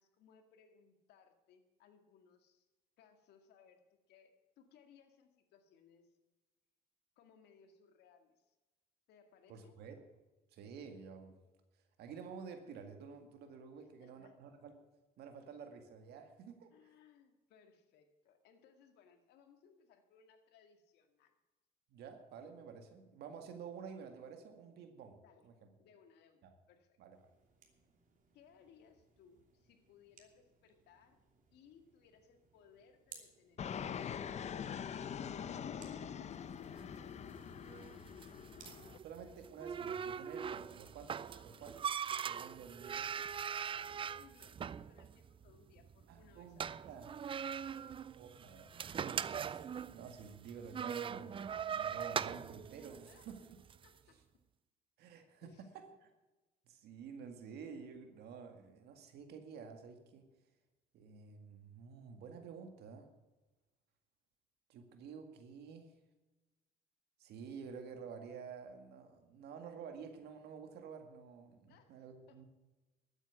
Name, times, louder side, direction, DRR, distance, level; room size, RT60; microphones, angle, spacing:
voice 1, 0.0-2.7 3.0-6.1 7.2-8.6 9.1-9.8 13.7-14.4 16.7-21.4 25.2-25.5 25.8-27.0 28.3-31.2 31.5-34.1 36.5-37.3 41.3-41.7 43.7-46.8 47.8-48.0 53.0-53.3 53.8-54.4 55.4-55.7 71.7-72.4, left 6 dB, 80° left, 6 dB, 2.1 m, -65 dB
voice 2, 9.5-10.0 10.5-11.3 12.0-14.8 15.2-16.7 21.9-25.5 26.4-26.5 27.0-27.3 39.0-42.0 42.2-43.1 46.1-47.1 48.2-53.4 55.0-56.1 56.7-60.3 60.9-63.1 64.7-65.9 67.2-72.4, right 6 dB, 75° right, 6 dB, 2.0 m, -51 dB
sound 1, 27.1-39.5, right 6 dB, 50° right, 2.9 m, -64 dB
Fixed-wing aircraft airplane, 33.6-39.0, left 8 dB, 40° left, 0.7 m, -43 dB
sound 2, 36.6-53.9, right 7 dB, 30° right, 0.4 m, -42 dB
13.0 x 9.0 x 8.3 m, 1.1 s
cardioid pair, 110°, 17 cm